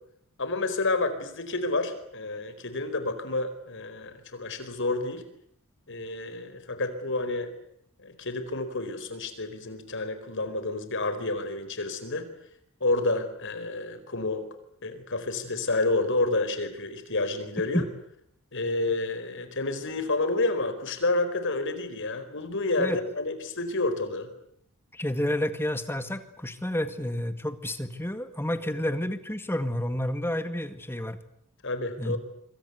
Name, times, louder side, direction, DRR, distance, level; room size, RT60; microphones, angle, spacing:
voice 1, 0.4-5.2 5.9-7.5 8.0-12.3 12.8-14.5 14.8-17.8 18.5-24.3 31.6-32.2, left 2 dB, 60° left, 10 dB, 4.6 m, -29 dB
voice 2, 24.9-31.2 32.0-32.2, left 1 dB, 10° left, 10 dB, 1.9 m, -30 dB
26.0 x 25.5 x 8.2 m, 0.71 s
head